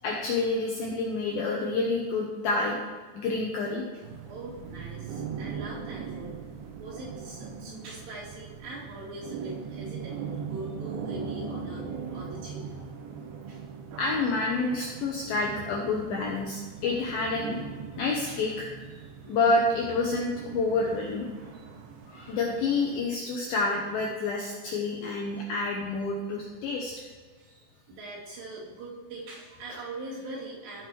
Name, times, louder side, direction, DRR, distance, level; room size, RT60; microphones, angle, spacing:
voice 1, 0.0-2.8 3.1-3.8 14.0-17.6 18.0-18.7 19.3-21.3 22.1-26.9, left 3 dB, 75° left, -1 dB, 2.2 m, -28 dB
sound 1, 4.0-23.0, right 6 dB, 85° right, 3.1 m, -40 dB
voice 2, 4.3-6.4 6.8-11.8 12.1-12.7 13.5-13.6 17.9-18.5 19.2-19.4 21.5-21.7 23.7-23.8 25.1-25.4 26.7-26.8 27.4-30.9, right 2 dB, 65° right, -9 dB, 4.9 m, -42 dB
15.0 x 6.0 x 3.1 m, 1.5 s
omnidirectional pair, 5.2 m